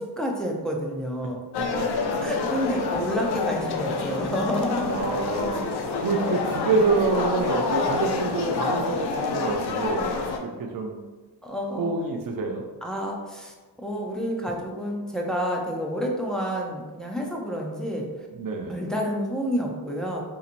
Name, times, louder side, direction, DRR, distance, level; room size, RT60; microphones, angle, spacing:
voice 1, 0.0-1.4 2.2-5.1 11.4-11.9 12.8-18.1 18.7-20.2, equal, ahead, -1 dB, 0.5 m, -29 dB
voice 2, 1.2-1.9 4.9-5.7 6.0-10.1 10.4-11.0 11.8-12.7 18.4-18.8, right 3 dB, 55° right, 2 dB, 0.7 m, -27 dB
sound 1, 1.5-10.4, left 4 dB, 70° left, 0.6 m, -28 dB
4.1 x 2.9 x 2.5 m, 1.3 s
cardioid pair, 100°, 41 cm